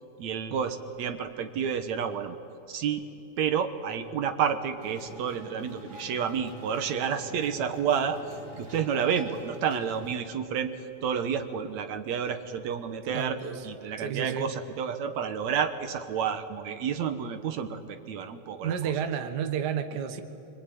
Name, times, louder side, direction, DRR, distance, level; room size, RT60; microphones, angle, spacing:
voice 1, 0.2-2.4 2.7-3.0 3.4-8.2 8.6-10.7 11.0-13.4 13.6-18.8, right 7 dB, 70° right, 8 dB, 2.4 m, -30 dB
sound 1, 4.8-10.2, equal, 25° right, 6.7 m, -47 dB
voice 2, 13.1-13.6 14.0-14.5 18.6-20.2, right 8 dB, 50° right, 7 dB, 1.4 m, -31 dB
26.5 x 24.0 x 9.3 m, 2.9 s
omnidirectional pair, 3.4 m